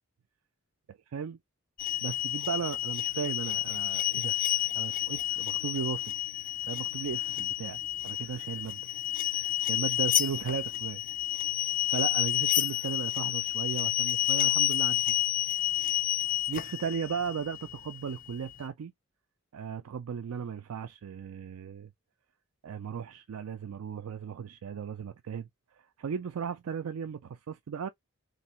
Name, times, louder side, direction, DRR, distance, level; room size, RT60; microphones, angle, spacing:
sound 1, 1.8-18.6, left 12 dB, 40° left, 0.4 m, -30 dB
voice 1, 2.0-4.3 4.7-6.1 6.6-8.9 9.6-11.0 11.9-15.1 16.5-18.9 19.5-21.9 22.6-25.5 25.7-27.9, right 7 dB, 75° right, 0.4 m, -36 dB
3.6 x 2.6 x 4.2 m
head